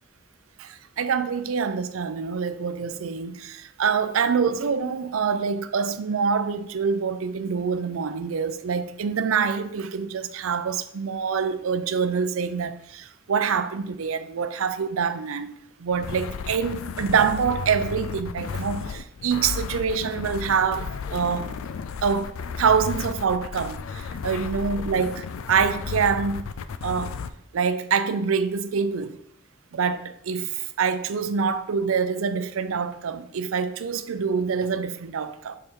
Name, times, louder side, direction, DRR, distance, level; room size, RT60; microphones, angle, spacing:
voice 1, 0.6-21.5 22.0-26.4 26.8-27.1 27.5-29.2 29.7-35.6, right 6 dB, 90° right, 0.5 m, -26 dB
sound 1, 15.9-27.3, left 6 dB, 90° left, 0.4 m, -33 dB
6.5 x 4.5 x 3.6 m
head